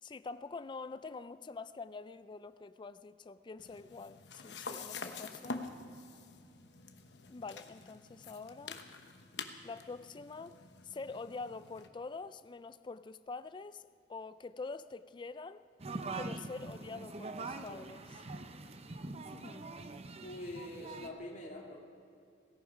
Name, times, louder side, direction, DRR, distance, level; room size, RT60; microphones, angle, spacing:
voice 1, 0.0-5.6 7.3-8.8 9.6-10.6 10.8-15.6 16.1-18.3 19.4-19.6, left 4 dB, 25° left, 0.4 m, -45 dB
sound 1, 3.6-11.9, left 4 dB, 70° left, 1.1 m, -47 dB
sound 2, 15.8-21.1, right 3 dB, 35° right, 0.8 m, -43 dB
voice 2, 20.2-21.8, left 1 dB, 45° left, 2.7 m, -44 dB
17.0 x 17.0 x 5.0 m
head